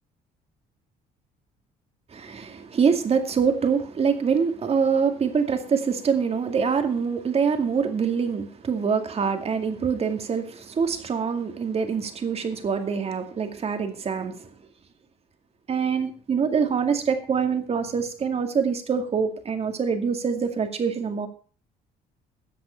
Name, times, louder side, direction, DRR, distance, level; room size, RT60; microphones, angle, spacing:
voice 1, 2.1-14.5 15.7-21.3, right 6 dB, 35° right, 2.3 m, -25 dB
13.5 x 7.9 x 5.7 m
cardioid pair, 110°, 17 cm